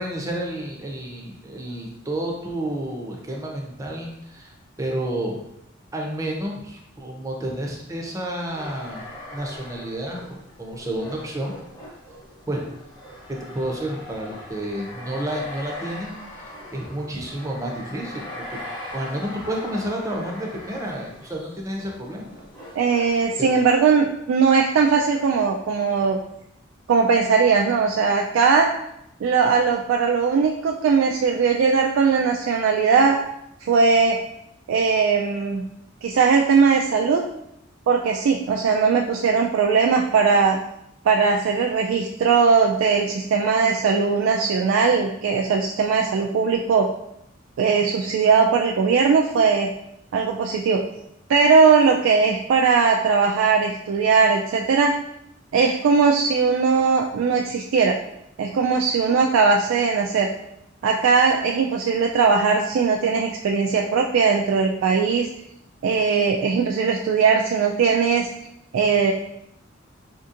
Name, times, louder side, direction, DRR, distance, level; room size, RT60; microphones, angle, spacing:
voice 1, 0.0-5.4 5.9-9.0 9.3-11.5 12.5-12.6 13.3-18.6 18.9-22.3 23.4-23.5, right 1 dB, 15° right, 0 dB, 0.6 m, -30 dB
sound 1, 8.5-23.9, left 1 dB, 25° left, 0.9 m, -40 dB
voice 2, 22.8-26.2 26.9-28.7 29.2-33.2 33.6-34.2 34.7-35.6 36.0-37.2 37.9-40.6 41.1-46.9 47.6-49.7 50.1-50.8 51.3-55.0 55.5-58.0 58.4-60.3 60.8-65.3 65.8-68.3 68.7-69.1, right 5 dB, 85° right, 1 dB, 0.3 m, -19 dB
4.3 x 2.7 x 2.5 m, 0.79 s
head